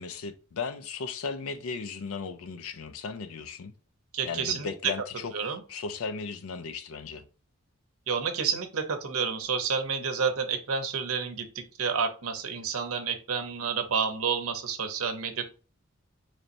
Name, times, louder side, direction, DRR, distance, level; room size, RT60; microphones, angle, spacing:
voice 1, 0.0-3.7 4.3-7.2, left 5 dB, 80° left, 0.4 m, -36 dB
voice 2, 4.1-4.9 5.3-5.6 8.1-11.5 11.8-15.4, right 6 dB, 85° right, 0.7 m, -29 dB
3.2 x 2.6 x 4.1 m
head